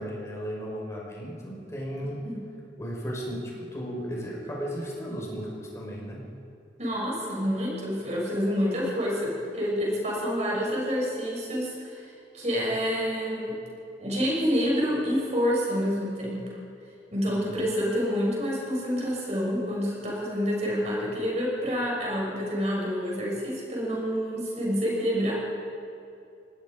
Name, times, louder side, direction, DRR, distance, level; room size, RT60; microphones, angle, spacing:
voice 1, 0.0-2.2 2.8-3.4 3.7-6.2 17.2-17.7, equal, 15° left, -4 dB, 5.4 m, -35 dB
voice 2, 6.8-12.1 12.3-13.5 14.0-16.5 17.1-25.3, equal, 40° right, -4 dB, 6.5 m, -28 dB
25.0 x 20.5 x 5.3 m, 2.6 s
head